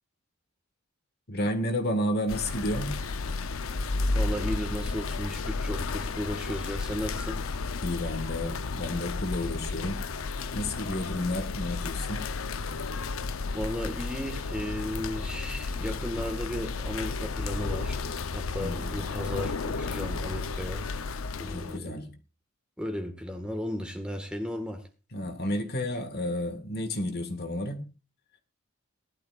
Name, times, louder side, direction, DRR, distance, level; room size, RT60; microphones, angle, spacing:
voice 1, 1.3-3.0 7.8-10.0 10.5-12.2 18.6-19.0 21.5-22.1 25.1-27.9, left 1 dB, 50° left, 7 dB, 1.7 m, -31 dB
sound 1, 2.3-21.8, left 3 dB, 90° left, 0.7 m, -33 dB
voice 2, 4.1-7.4 13.5-18.0 18.3-20.9 21.4-22.0 22.8-24.8, equal, 5° right, 6 dB, 1.6 m, -35 dB
19.0 x 12.0 x 2.4 m, 0.32 s
head